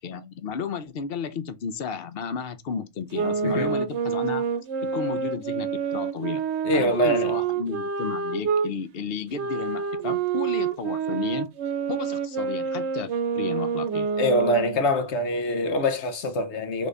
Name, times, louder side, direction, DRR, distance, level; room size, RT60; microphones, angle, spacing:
voice 1, 0.0-4.4 4.8-6.4 6.7-11.5 11.9-13.1 13.4-14.1, left 6 dB, 60° left, 0.9 m, -33 dB
sound 1, 3.1-8.7 9.3-14.8, right 6 dB, 80° right, 1.0 m, -27 dB
voice 2, 6.6-7.4 10.1-10.2 14.2-16.9, left 1 dB, 80° left, 1.2 m, -24 dB
3.8 x 3.6 x 3.4 m
omnidirectional pair, 1.1 m